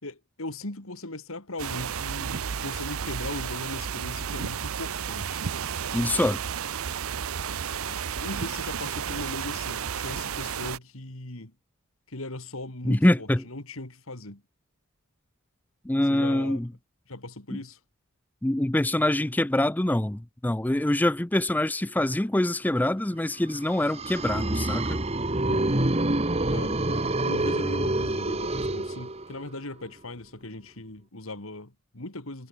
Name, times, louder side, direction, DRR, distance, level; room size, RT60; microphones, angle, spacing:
voice 1, 0.0-5.5 7.5-11.5 12.1-14.4 16.1-16.6 17.1-17.8 25.3-25.9 26.5-32.5, left 2 dB, 70° left, 3.1 m, -39 dB
sound 1, 1.6-10.8, right 7 dB, 75° right, 0.7 m, -32 dB
voice 2, 5.9-6.4 12.8-13.4 15.8-16.7 17.5-17.6 18.4-25.0, left 1 dB, 10° left, 0.4 m, -25 dB
sound 2, 23.6-29.5, right 2 dB, 30° right, 1.5 m, -27 dB
head